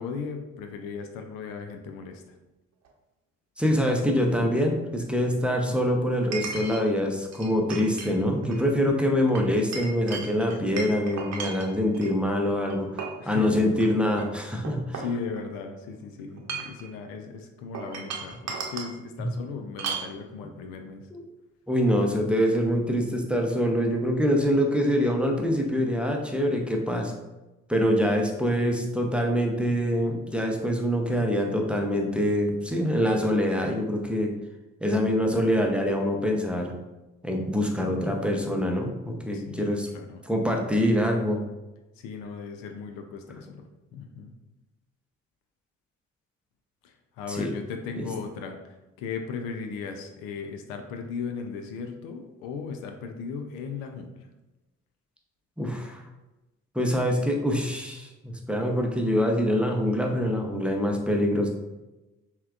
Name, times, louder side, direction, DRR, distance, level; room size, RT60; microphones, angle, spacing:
voice 1, 0.0-2.2 13.2-13.6 14.9-21.1 39.3-40.2 42.0-43.6 43.9-44.3 46.8-48.6 49.0-54.1, left 5 dB, 70° left, 5 dB, 0.5 m, -37 dB
Chink clink, 2.8-2.9 6.3-6.8 7.3-8.1 8.4-8.7 9.3-12.1 12.7-13.2 13.7-13.8 14.2-15.6 16.3-16.8 17.7-18.9 19.8-20.1, right 5 dB, 45° right, 0.8 m, -35 dB
voice 2, 3.6-15.0 19.2-19.3 21.1-21.2 21.7-27.1 27.7-34.3 34.8-36.7 37.2-39.9 40.2-41.4 47.3-47.5 48.0-48.1 55.6-56.0 56.7-61.5, equal, 5° right, 1 dB, 0.6 m, -25 dB
5.6 x 2.2 x 2.4 m, 1.0 s
hypercardioid pair, 45°, 36 cm